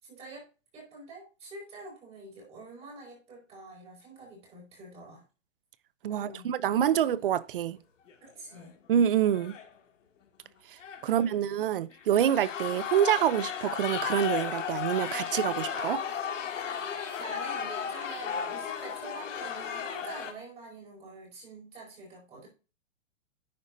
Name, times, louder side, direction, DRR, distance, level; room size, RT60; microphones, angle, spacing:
voice 1, 0.0-0.4 0.7-5.2 6.1-6.5 8.2-8.7 11.0-11.4 16.5-16.6 17.2-22.5, right 3 dB, 15° right, 5.1 m, -46 dB
voice 2, 6.0-7.8 8.9-9.5 11.0-16.0, right 10 dB, 45° right, 0.7 m, -26 dB
sound 1, 8.1-8.3 8.5-8.6 9.3-9.7 10.8-11.3 11.9-20.3, left 7 dB, 80° left, 2.5 m, -34 dB
10.5 x 8.2 x 2.7 m
hypercardioid pair, 165°, 37 cm